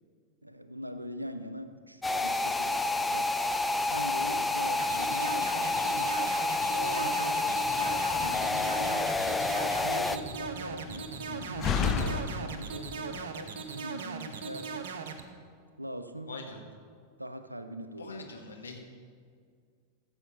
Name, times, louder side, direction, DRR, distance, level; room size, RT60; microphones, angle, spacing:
voice 1, 0.4-3.3 3.8-6.1 6.7-7.6 8.2-9.1 9.7-14.9 15.8-16.4 17.2-18.3, equal, 85° right, 10 dB, 0.6 m, -41 dB
sound 1, 2.0-10.2, left 2 dB, 10° left, 0.4 m, -29 dB
sound 2, 4.8-15.2, right 6 dB, 55° right, 0.9 m, -39 dB
Slam, 7.6-13.2, left 6 dB, 30° left, 0.8 m, -36 dB
voice 2, 16.3-16.7 18.0-18.8, left 3 dB, 75° left, 1 dB, 1.6 m, -43 dB
14.5 x 7.1 x 5.7 m, 2.1 s
figure-of-eight pair, 90°, 0 cm